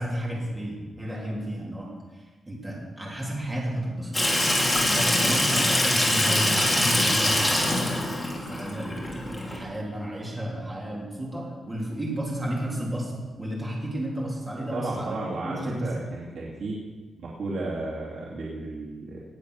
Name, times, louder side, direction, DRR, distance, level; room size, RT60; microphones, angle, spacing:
voice 1, 0.0-4.2 4.9-8.1 8.5-15.9, right 1 dB, 15° right, -3 dB, 3.3 m, -32 dB
Water tap faucet / Sink (filling or washing), 4.1-9.6, left 1 dB, 10° left, 2.7 m, -24 dB
voice 2, 14.7-16.8 17.2-19.2, right 2 dB, 70° right, -6 dB, 2.8 m, -33 dB
19.0 x 7.5 x 6.5 m, 1.3 s
wide cardioid pair, 155°, 0 cm